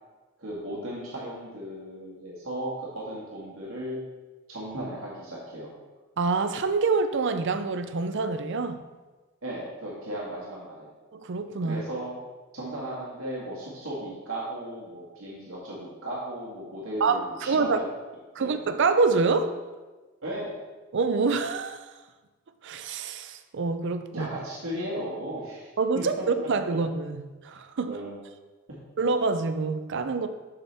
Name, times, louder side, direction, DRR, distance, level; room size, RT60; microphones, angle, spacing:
voice 1, 0.4-4.0 4.5-5.7 9.4-10.9 11.6-12.2 12.5-17.9 18.4-18.6 20.2-20.5 24.1-25.7 25.9-26.0 26.7-26.8 27.8-28.2, right 1 dB, 75° right, -6 dB, 1.9 m, -36 dB
voice 2, 6.2-8.8 11.1-11.8 17.0-17.8 18.3-19.5 20.9-21.9 22.6-24.3 25.8-28.0 29.0-30.3, right 4 dB, 60° right, 10 dB, 0.5 m, -26 dB
7.0 x 6.8 x 3.4 m, 1.2 s
head